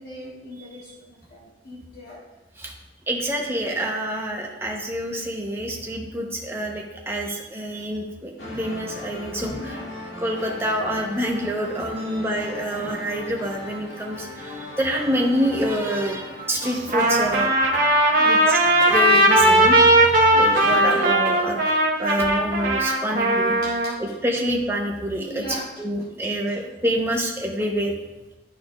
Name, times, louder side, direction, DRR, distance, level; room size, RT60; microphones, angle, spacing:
voice 1, 0.0-2.2 9.6-9.9 12.0-12.2 17.5-18.5 23.6-23.9 25.3-25.6, equal, 55° left, -6 dB, 1.4 m, -40 dB
voice 2, 3.1-9.8 10.2-17.5 18.2-18.6 18.9-19.8 20.3-21.6 22.0-23.5 24.0-27.9, equal, 10° right, 0 dB, 0.8 m, -27 dB
sound 1, 8.4-20.8, left 1 dB, 85° left, 1.9 m, -38 dB
sound 2, 16.6-17.9 18.8-19.3 20.5-21.8, right 2 dB, 65° right, 1.1 m, -36 dB
Trumpet, 16.9-23.9, right 1 dB, 45° right, 1.0 m, -18 dB
11.5 x 4.3 x 2.4 m, 1.0 s
head